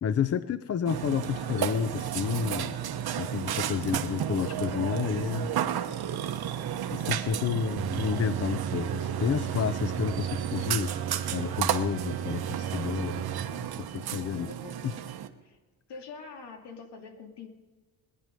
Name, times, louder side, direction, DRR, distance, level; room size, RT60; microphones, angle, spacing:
voice 1, 0.0-2.8 3.2-5.5 6.9-11.0 11.3-14.5, left 7 dB, 35° left, 13 dB, 0.5 m, -30 dB
Burping eructation, 0.9-15.3, right 9 dB, 60° right, 1.1 m, -33 dB
sound 1, 7.8-13.9, right 9 dB, 35° right, 0.4 m, -36 dB
voice 2, 14.1-15.1 15.4-15.6 15.9-17.5, left 4 dB, 70° left, 3 dB, 2.6 m, -45 dB
19.5 x 11.0 x 5.3 m, 1.4 s
cardioid pair, 130°, 42 cm